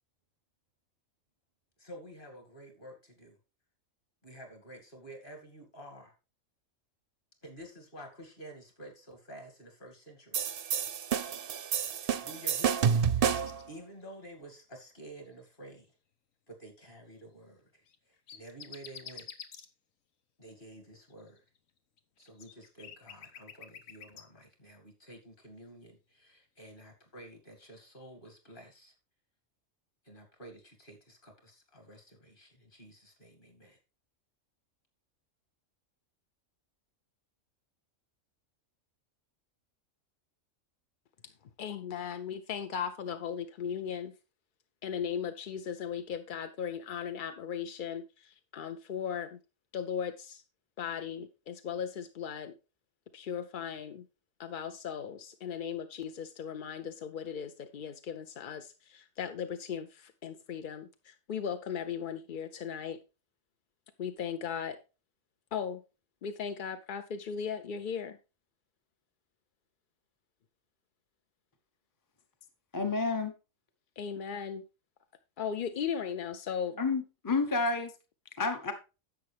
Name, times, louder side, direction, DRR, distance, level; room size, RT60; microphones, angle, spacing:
voice 1, 1.8-3.4 4.2-6.1 7.4-10.4 12.0-13.1 13.7-15.9 16.5-17.8 18.3-19.3 20.4-21.4 22.2-28.9 30.0-33.8, right 1 dB, 40° left, 2.5 m, -50 dB
sound 1, 10.3-13.6, right 7 dB, 55° right, 0.7 m, -29 dB
sound 2, 12.0-12.6 12.9-13.6 14.0-14.2 15.2-15.5 17.8-19.7 21.1-24.2, left 7 dB, 80° left, 1.4 m, -49 dB
voice 2, 41.6-44.1 44.8-49.4 49.7-50.4 50.8-52.5 53.1-54.1 54.4-63.0 64.0-64.8 65.5-65.8 66.2-68.2 74.0-74.6 75.4-76.8, left 7 dB, 55° left, 0.6 m, -37 dB
voice 3, 72.7-73.3 76.8-77.9 78.4-78.7, left 3 dB, 20° left, 0.7 m, -30 dB
10.5 x 7.5 x 3.4 m
omnidirectional pair, 1.4 m